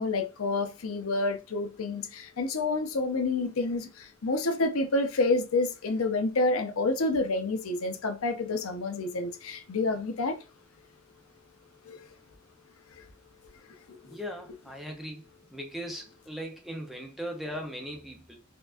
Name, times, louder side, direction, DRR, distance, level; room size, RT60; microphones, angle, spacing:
voice 1, 0.0-10.4 11.8-12.0 13.0-13.1 13.9-14.2, left 2 dB, 80° left, 0.6 m, -29 dB
voice 2, 14.0-15.2 15.5-18.4, equal, ahead, 0.6 m, -38 dB
4.4 x 2.3 x 2.5 m
head